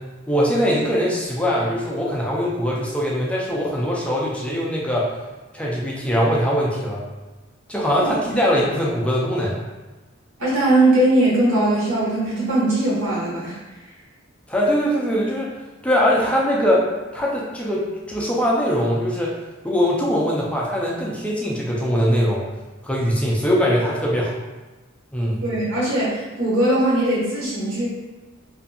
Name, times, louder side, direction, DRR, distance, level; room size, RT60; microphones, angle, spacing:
voice 1, 0.3-5.1 5.5-7.0 7.7-9.6 14.5-15.5 15.8-16.9 17.1-19.3 19.6-22.4 22.8-24.4 25.1-25.4, equal, 5° left, -4 dB, 0.3 m, -21 dB
voice 2, 10.4-13.6 25.4-27.9, right 1 dB, 85° right, -7 dB, 1.1 m, -20 dB
2.6 x 2.5 x 2.3 m, 1.2 s
head